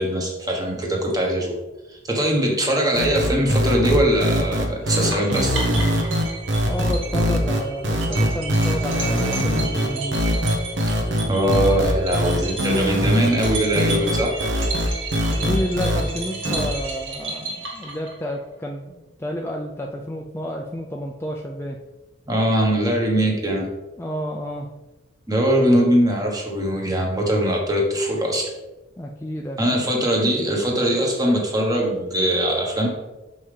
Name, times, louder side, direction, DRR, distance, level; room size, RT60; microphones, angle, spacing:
voice 1, 0.0-1.5 1.9-5.6 11.3-14.3 22.3-23.7 25.3-28.5 29.6-32.9, right 1 dB, 20° right, 0 dB, 1.1 m, -21 dB
sound 1, 2.9-16.0 16.5-16.7, equal, 70° right, 1.1 m, -22 dB
sound 2, 4.9-18.4, right 3 dB, 85° right, 1.8 m, -33 dB
voice 2, 6.6-10.2 15.2-18.9 19.2-21.8 24.0-24.7 29.0-29.8, equal, 15° left, 0 dB, 0.4 m, -30 dB
6.3 x 5.5 x 3.3 m, 1.1 s
head